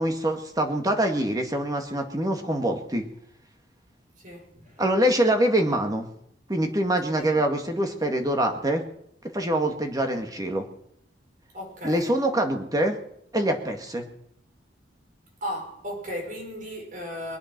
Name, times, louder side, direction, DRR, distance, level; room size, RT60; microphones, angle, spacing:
voice 1, 0.0-3.0 4.8-6.1 6.5-8.8 9.3-10.7 11.8-13.0 13.3-14.1, right 1 dB, 20° right, 2.0 m, -24 dB
voice 2, 4.2-4.8 7.2-7.4 11.5-12.1 15.4-17.4, equal, 45° right, 4.9 m, -36 dB
23.5 x 8.4 x 6.1 m
head